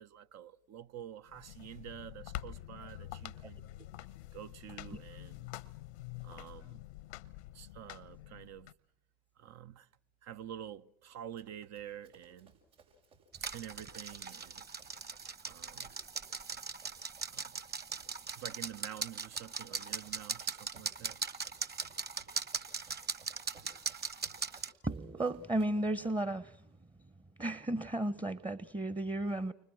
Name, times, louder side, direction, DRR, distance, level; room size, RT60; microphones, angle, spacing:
voice 1, 0.0-3.7 4.3-5.5 6.2-6.8 7.5-8.7 9.4-9.9 10.2-12.5 13.5-14.6 15.4-15.9 17.3-17.6 18.3-21.2, right 10 dB, 55° right, 1.0 m, -48 dB
sound 1, 1.3-8.7, left 15 dB, 80° left, 1.0 m, -47 dB
Run, 11.4-26.3, right 3 dB, 80° right, 7.1 m, -63 dB
sound 2, 13.3-24.7, right 5 dB, 30° right, 1.5 m, -40 dB
voice 2, 24.8-26.7 27.4-29.5, right 1 dB, 15° right, 1.0 m, -34 dB
30.0 x 25.0 x 6.3 m
hypercardioid pair, 65°, 32 cm